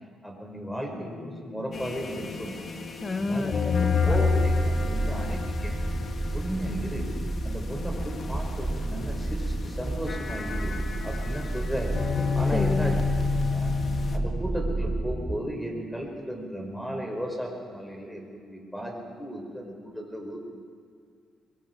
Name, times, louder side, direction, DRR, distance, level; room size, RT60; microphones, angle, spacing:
voice 1, 0.2-2.6 3.2-3.6 4.1-5.8 6.3-7.1 7.4-10.7 11.0-12.0 12.3-12.9 13.5-13.8 14.1-20.4, equal, 5° left, 1 dB, 5.8 m, -35 dB
sound 1, 0.9-15.8, left 4 dB, 80° left, 2.2 m, -44 dB
sound 2, 1.7-14.2, left 4 dB, 45° left, 1.9 m, -30 dB
voice 2, 3.0-4.2 12.5-13.0, left 3 dB, 30° left, 8 dB, 0.9 m, -30 dB
sound 3, 4.0-15.4, right 2 dB, 15° right, 0.5 m, -31 dB
24.0 x 23.0 x 4.9 m, 2.2 s
cardioid pair, 90°, 0 cm